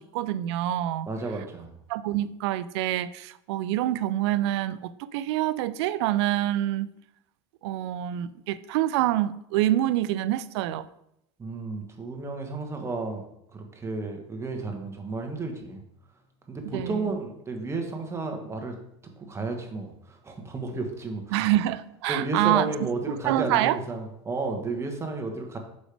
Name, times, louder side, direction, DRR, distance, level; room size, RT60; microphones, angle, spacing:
voice 1, 0.0-1.1 1.9-6.9 7.6-10.9 16.6-17.1 21.3-22.7 23.2-23.8, right 13 dB, 75° right, 16 dB, 0.4 m, -26 dB
voice 2, 1.1-1.7 11.4-13.2 13.5-15.8 16.5-18.8 19.2-21.5 22.1-25.6, right 3 dB, 20° right, 4 dB, 1.2 m, -32 dB
6.1 x 5.2 x 3.4 m, 0.77 s
supercardioid pair, 110°, 14 cm